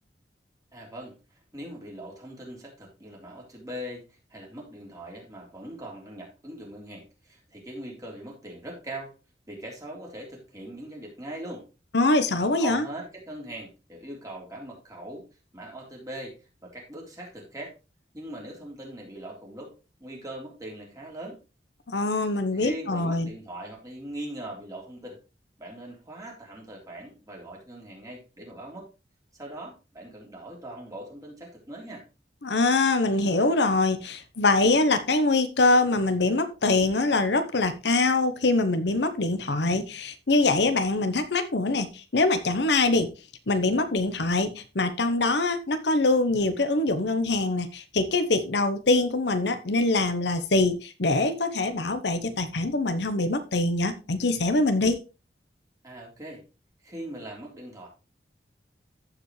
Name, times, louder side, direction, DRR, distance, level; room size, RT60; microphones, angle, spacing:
voice 1, 0.7-1.1 1.5-9.1 9.5-11.6 12.6-15.2 15.5-16.4 16.6-17.7 18.1-19.7 20.0-21.4 22.5-25.2 25.6-28.9 29.3-32.0 55.8-56.4 56.8-57.9, right 1 dB, 20° right, 3.4 m, -41 dB
voice 2, 11.9-12.8 21.9-23.3 32.4-43.1 43.5-55.0, left 2 dB, 70° left, 0.9 m, -24 dB
14.5 x 5.0 x 3.2 m
head